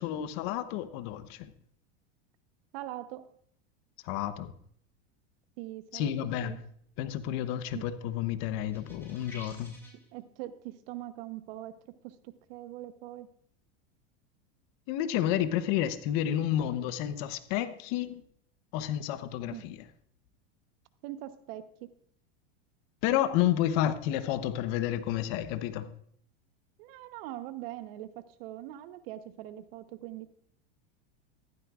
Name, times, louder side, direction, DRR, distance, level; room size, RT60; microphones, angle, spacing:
voice 1, 0.0-1.5 4.0-4.5 5.9-6.6 7.0-9.7 14.9-18.2 18.7-19.8 23.0-25.9, left 11 dB, 55° left, 1.0 m, -30 dB
voice 2, 2.7-3.2 5.6-6.1 6.4-6.6 7.7-7.8 9.9-11.7 12.0-13.3 19.5-19.7 21.0-21.6 26.8-30.3, right 14 dB, 65° right, 1.0 m, -42 dB
sound 1, 8.7-10.0, left 1 dB, 5° left, 5.9 m, -50 dB
14.5 x 12.5 x 2.5 m
supercardioid pair, 120°, 32 cm